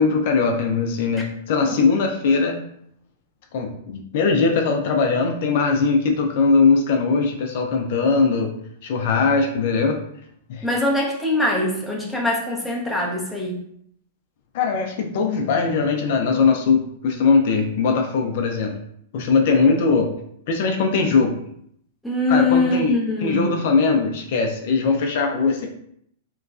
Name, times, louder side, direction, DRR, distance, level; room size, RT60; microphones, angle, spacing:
voice 1, 0.0-2.6 3.5-8.5 8.8-10.0 10.5-10.7 14.5-18.7 19.1-20.1 20.5-21.4 22.3-22.9 23.2-25.7, left 4 dB, 60° left, 2 dB, 0.4 m, -20 dB
voice 2, 10.6-13.5 22.0-23.5, left 2 dB, ahead, -4 dB, 0.7 m, -22 dB
3.0 x 2.3 x 2.3 m, 0.70 s
hypercardioid pair, 125°, 0 cm